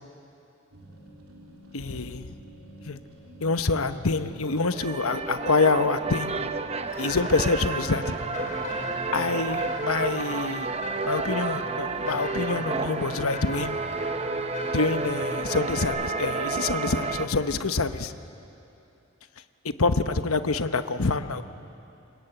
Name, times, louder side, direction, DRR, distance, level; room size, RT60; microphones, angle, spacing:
sound 1, 0.7-14.2, right 1 dB, 70° right, 4.1 m, -50 dB
voice 1, 1.7-2.3 2.8-3.0 3.4-6.3 7.0-8.1 9.1-10.7 11.1-13.8 14.7-18.1 19.6-21.4, left 3 dB, 75° left, 10 dB, 1.0 m, -26 dB
sound 2, 4.4-17.3, right 4 dB, 30° right, 0.8 m, -31 dB
sound 3, 6.9-15.8, left 2 dB, 35° left, 4.2 m, -40 dB
28.5 x 22.5 x 9.0 m, 2.8 s
head